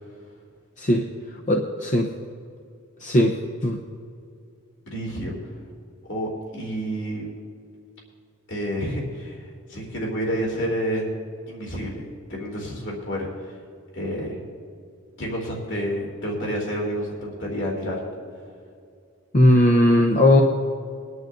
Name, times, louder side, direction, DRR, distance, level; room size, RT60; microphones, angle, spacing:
voice 1, 1.5-2.1 3.0-3.4 3.6-3.8 19.3-20.4, left 1 dB, 35° left, 1 dB, 0.7 m, -17 dB
voice 2, 4.9-5.5 6.0-7.3 8.5-11.1 11.5-13.5 13.9-14.4 15.2-18.0, equal, 55° left, -2 dB, 2.7 m, -29 dB
22.5 x 11.0 x 2.6 m, 2.4 s
head